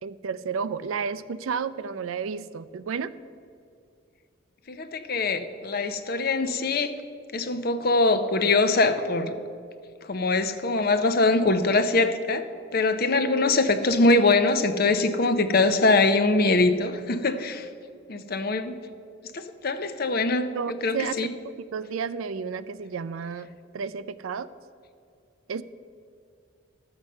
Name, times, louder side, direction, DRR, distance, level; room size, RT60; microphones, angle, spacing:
voice 1, 0.0-3.1 20.5-21.1 21.7-23.5 23.7-24.5 25.5-25.6, right 6 dB, 85° right, 15 dB, 0.4 m, -31 dB
voice 2, 4.7-6.9 7.3-9.4 10.0-17.7 18.1-18.8 19.3-21.3, left 3 dB, 50° left, 10 dB, 0.6 m, -23 dB
12.0 x 8.0 x 5.4 m, 2.5 s
head